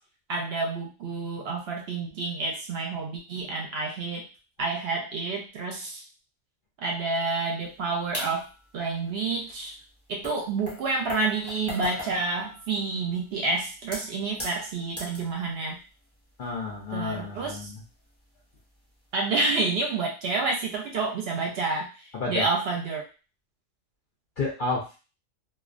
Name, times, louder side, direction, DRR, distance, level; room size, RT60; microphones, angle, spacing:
voice 1, 0.3-4.3 4.6-6.0 6.8-8.5 8.7-9.7 10.1-15.8 16.9-17.7 19.1-23.0, right 3 dB, 65° right, 1 dB, 0.7 m, -29 dB
sound 1, 8.1-8.7 9.6-9.7 10.2-13.3 13.8-15.3 15.8-16.0 16.4-16.5 17.5-18.2 18.6-18.8 19.5-19.7, left 1 dB, 15° left, 0.7 m, -39 dB
voice 2, 16.4-17.8 22.1-22.5 24.4-25.0, left 3 dB, 60° left, -2 dB, 0.6 m, -31 dB
2.3 x 2.1 x 2.4 m, 0.33 s
omnidirectional pair, 1.3 m